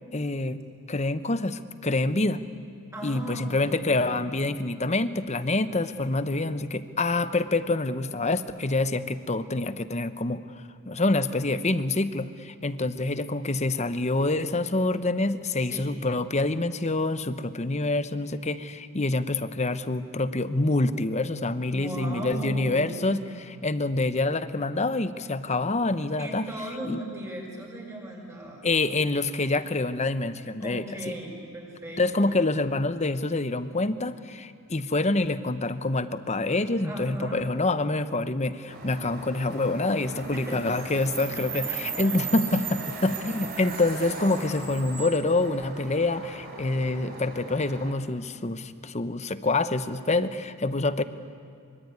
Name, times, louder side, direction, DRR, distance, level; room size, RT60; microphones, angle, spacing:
voice 1, 0.1-0.6 0.9-2.4 3.0-10.4 10.9-26.5 26.9-27.0 28.6-31.2 32.0-51.0, left 2 dB, 30° left, 12 dB, 0.9 m, -26 dB
voice 2, 2.9-4.3 15.6-15.9 21.5-23.2 26.2-28.7 30.6-32.5 36.8-37.5 40.1-40.6 41.0-42.3, right 1 dB, 15° right, -1 dB, 5.9 m, -38 dB
sound 1, 38.7-47.9, right 5 dB, 45° right, 4.9 m, -37 dB
24.5 x 24.0 x 9.6 m, 2.4 s
head